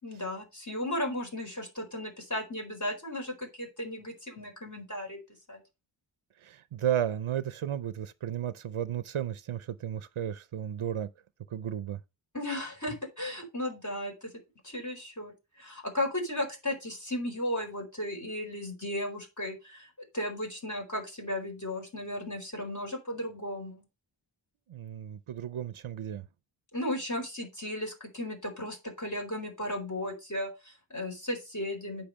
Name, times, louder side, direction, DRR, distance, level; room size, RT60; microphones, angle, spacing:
voice 1, 0.0-5.2 5.5-5.6 12.3-14.3 14.6-19.9 20.1-23.9 26.7-32.1, left 1 dB, 35° left, 4.4 m, -35 dB
voice 2, 6.4-11.1 11.5-12.0 24.7-26.2, right 10 dB, 80° right, 0.6 m, -33 dB
8.7 x 5.7 x 5.6 m
wide cardioid pair, 45°, 49 cm